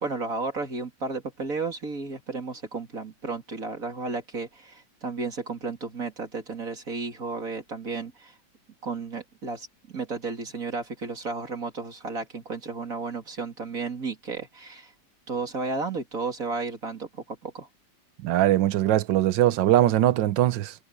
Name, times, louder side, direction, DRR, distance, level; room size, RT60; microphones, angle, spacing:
voice 1, 0.0-8.3 8.8-14.9 15.3-17.7, right 4 dB, 45° right, 3.2 m, -33 dB
voice 2, 18.2-20.7, right 13 dB, 75° right, 1.5 m, -21 dB
omnidirectional pair, 2.0 m